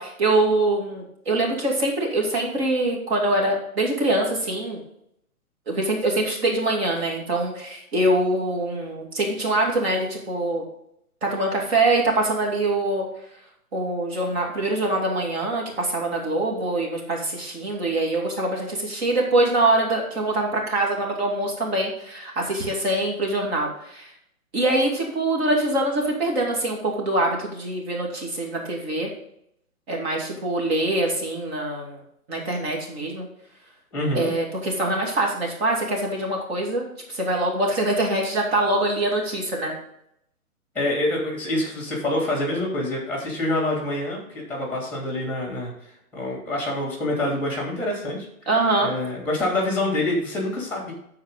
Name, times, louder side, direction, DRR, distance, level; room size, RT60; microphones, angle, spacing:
voice 1, 0.0-4.8 5.7-10.6 11.2-13.1 13.7-24.1 24.5-29.1 29.9-32.0 32.3-33.3 34.1-39.7 48.5-48.9, right 2 dB, 45° right, -1 dB, 2.4 m, -24 dB
voice 2, 33.9-34.3 40.7-45.7 46.1-48.3 48.8-50.9, left 1 dB, 5° left, -1 dB, 2.9 m, -26 dB
13.0 x 4.7 x 3.8 m, 0.74 s
hypercardioid pair, 145°, 44 cm